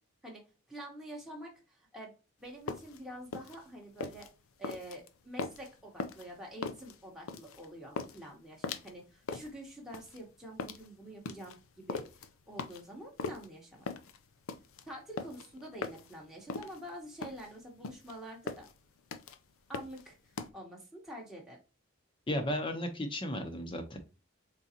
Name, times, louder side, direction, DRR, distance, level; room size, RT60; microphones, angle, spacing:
voice 1, 0.7-2.1 2.4-4.3 4.6-12.0 12.5-13.8 14.9-18.7 19.7-20.2 20.5-21.6, right 1 dB, ahead, -3 dB, 0.9 m, -47 dB
sound 1, 2.5-20.5, left 4 dB, 75° left, 0.5 m, -41 dB
voice 2, 22.3-24.0, left 1 dB, 25° left, 6 dB, 0.7 m, -34 dB
3.8 x 3.8 x 2.8 m, 0.31 s
head